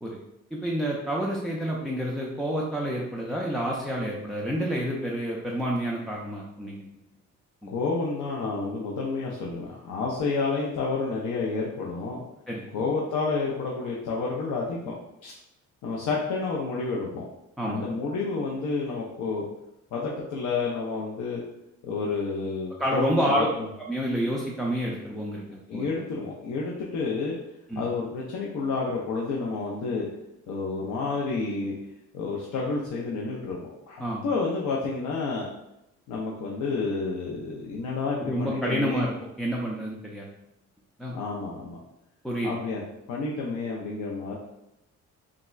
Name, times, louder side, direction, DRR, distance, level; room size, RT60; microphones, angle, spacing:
voice 1, 0.5-6.8 7.6-7.7 12.5-12.6 17.6-17.8 22.8-23.5 23.9-25.4 25.7-25.9 27.7-27.8 34.0-34.3 38.2-40.3 41.0-41.1 42.2-42.5, equal, ahead, -4 dB, 0.3 m, -28 dB
voice 2, 7.7-12.2 12.7-14.9 15.2-15.3 15.8-17.3 17.6-19.5 19.9-21.4 21.8-23.7 25.7-27.4 27.8-30.1 30.5-31.7 32.1-35.5 36.1-39.0 41.1-41.8 42.4-42.8 43.1-44.3, left 4 dB, 80° left, -3 dB, 0.5 m, -30 dB
3.5 x 2.1 x 2.3 m, 0.88 s
cardioid pair, 90°, 30 cm